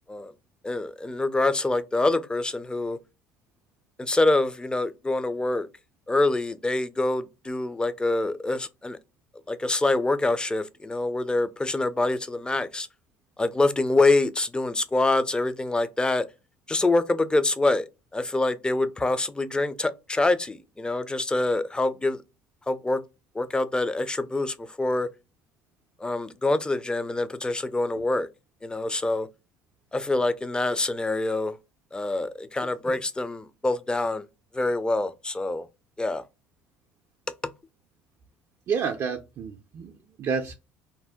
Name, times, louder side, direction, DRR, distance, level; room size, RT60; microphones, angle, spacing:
voice 1, 0.6-3.0 4.0-5.7 6.1-9.0 9.5-12.9 13.4-16.3 16.7-17.9 18.1-22.2 22.7-23.0 23.3-25.1 26.0-28.3 28.6-29.3 29.9-31.6 31.9-34.2 34.5-35.7 36.0-36.2, left 2 dB, 15° left, 0.4 m, -25 dB
voice 2, 38.7-39.9 40.2-40.5, right 6 dB, 45° right, 0.4 m, -29 dB
2.6 x 2.1 x 3.4 m
hypercardioid pair, 65°, 7 cm